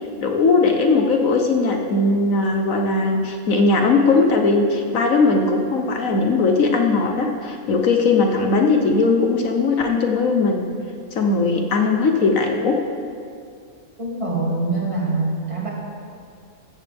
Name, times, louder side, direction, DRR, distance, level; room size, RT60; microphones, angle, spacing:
voice 1, 0.2-10.6 11.1-12.7, left 3 dB, 70° left, 3 dB, 1.4 m, -19 dB
voice 2, 14.0-15.7, right 2 dB, 20° right, -5 dB, 2.7 m, -24 dB
15.5 x 14.0 x 3.5 m, 2.3 s
omnidirectional pair, 1.5 m